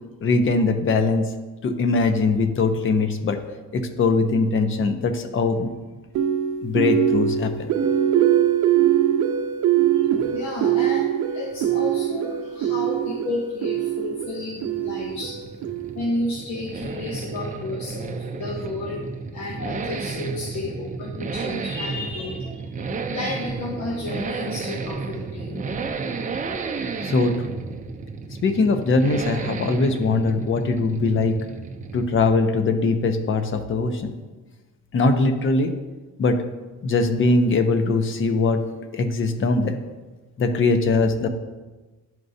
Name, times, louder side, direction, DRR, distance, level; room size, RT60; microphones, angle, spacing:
voice 1, 0.2-1.3 1.6-3.4 3.7-5.7 6.6-7.7 27.0-27.6 28.4-31.4 31.9-34.2 34.9-35.7 36.2-36.4 36.8-38.6 38.9-39.8 40.4-41.3, left 3 dB, 45° left, 8 dB, 0.7 m, -21 dB
sound 1, 6.1-16.2, right 10 dB, 80° right, 0.5 m, -22 dB
voice 2, 9.9-15.4 15.9-19.1 19.3-22.8 23.1-25.7, left 2 dB, 70° left, -2 dB, 1.1 m, -32 dB
Accelerating revving vroom, 14.1-32.3 32.5-32.6, right 4 dB, 25° right, 0.5 m, -32 dB
11.0 x 4.5 x 2.7 m, 1.2 s
cardioid pair, 140°, 29 cm